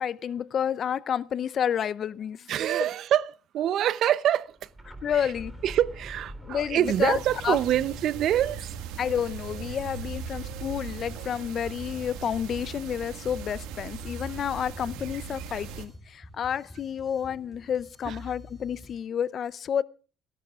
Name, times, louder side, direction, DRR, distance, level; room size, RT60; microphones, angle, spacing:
voice 1, 0.0-2.9 4.9-5.6 6.4-7.6 9.0-19.8, left 8 dB, 50° left, 0.6 m, -30 dB
voice 2, 2.5-3.3 3.5-4.5 5.2-5.3 5.6-8.7 18.1-18.2, right 11 dB, 65° right, 0.7 m, -25 dB
sound 1, 4.5-10.3, right 1 dB, 10° right, 3.7 m, -47 dB
sound 2, 5.3-19.0, left 1 dB, 15° left, 2.4 m, -47 dB
sound 3, 6.8-15.9, right 8 dB, 85° right, 1.9 m, -39 dB
30.0 x 12.0 x 2.4 m
supercardioid pair, 85°, 0 cm